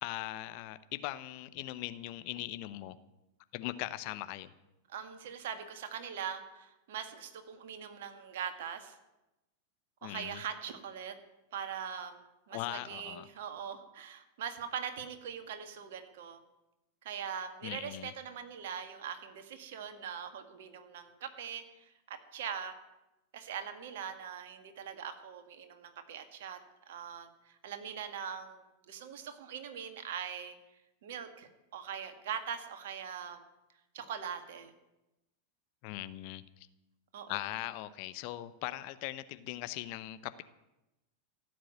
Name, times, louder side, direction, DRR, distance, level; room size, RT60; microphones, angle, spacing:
voice 1, 0.0-3.0 3.5-4.5 10.0-10.4 12.5-13.3 17.6-18.1 35.8-36.7 37.3-40.4, left 16 dB, 45° left, 13 dB, 0.8 m, -40 dB
voice 2, 4.9-9.0 10.0-11.1 11.5-16.4 17.0-22.8 23.3-26.6 26.9-30.5 31.0-33.4 33.9-34.7 37.1-37.4, right 8 dB, 55° right, 7 dB, 2.0 m, -42 dB
16.0 x 7.8 x 9.3 m, 0.96 s
figure-of-eight pair, 90°, 0 cm